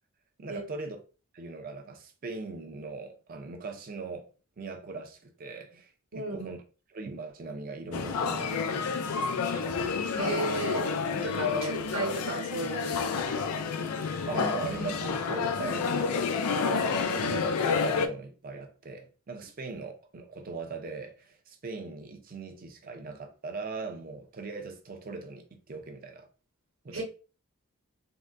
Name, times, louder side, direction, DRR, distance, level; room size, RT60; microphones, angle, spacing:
voice 1, 0.4-1.0 1.3-4.3 4.6-6.6 6.9-9.7 11.5-11.7 14.3-26.3 26.8-27.0, right 3 dB, 40° right, 0.5 m, -40 dB
voice 2, 6.1-6.5 10.2-13.0 26.9-27.0, right 3 dB, 70° right, 1.0 m, -34 dB
sound 1, 7.9-18.1, left 5 dB, 90° left, 0.4 m, -29 dB
3.6 x 2.1 x 2.5 m
head